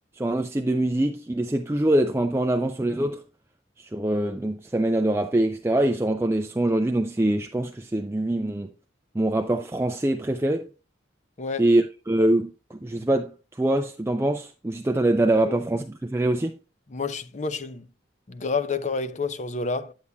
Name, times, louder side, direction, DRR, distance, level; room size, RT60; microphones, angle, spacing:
voice 1, 0.2-3.2 3.8-8.7 9.1-10.7 11.6-13.3 13.6-16.5, right 1 dB, 15° right, 0.3 m, -24 dB
voice 2, 16.9-17.9 18.3-19.9, left 4 dB, 35° left, 0.6 m, -29 dB
9.6 x 8.4 x 2.3 m
head